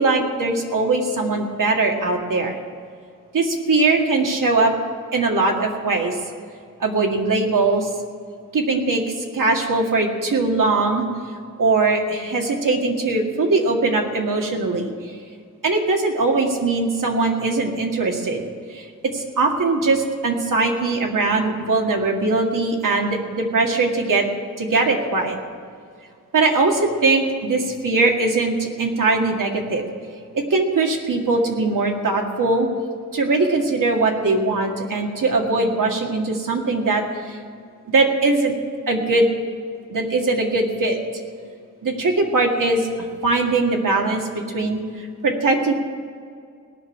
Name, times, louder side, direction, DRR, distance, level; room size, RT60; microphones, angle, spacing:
voice 1, 0.0-2.6 3.3-4.7 5.1-6.2 6.8-7.9 8.5-11.1 11.6-14.9 15.6-18.4 18.7-18.9 19.1-24.3 24.6-25.4 26.3-29.8 30.3-32.7 33.1-37.4 37.9-38.6 38.9-39.3 39.9-41.0 41.8-45.7, right 3 dB, 75° right, 1 dB, 2.1 m, -21 dB
18.0 x 6.3 x 9.9 m, 2.2 s
wide cardioid pair, 130°, 32 cm